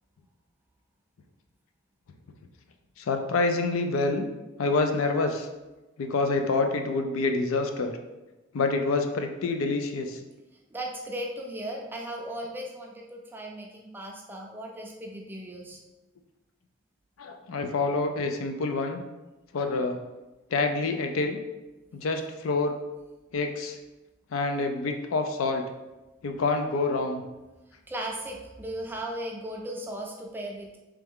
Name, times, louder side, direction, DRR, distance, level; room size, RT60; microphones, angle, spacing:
voice 1, 3.0-4.3 4.6-5.5 6.0-7.9 8.5-10.2 17.2-19.0 19.5-20.0 20.5-21.4 21.9-22.8 23.3-23.8 24.3-25.6 26.2-27.2, left 3 dB, 75° left, 6 dB, 0.4 m, -27 dB
voice 2, 10.7-15.8 27.9-30.8, right 1 dB, 10° right, 0 dB, 0.4 m, -37 dB
3.4 x 3.3 x 3.5 m, 1.1 s
head